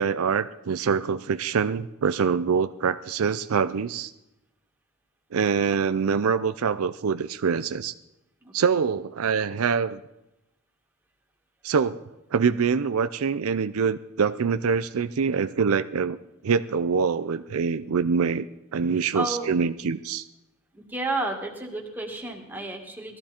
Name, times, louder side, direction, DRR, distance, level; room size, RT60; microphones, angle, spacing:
voice 1, 0.0-4.1 5.3-7.9 8.5-10.0 11.6-12.0 12.3-16.2 16.4-18.5 18.7-20.2, right 6 dB, 70° right, 12 dB, 0.5 m, -25 dB
voice 2, 19.1-19.5 20.7-23.2, right 2 dB, 10° right, 0 dB, 2.2 m, -31 dB
19.5 x 14.0 x 4.4 m, 0.92 s
head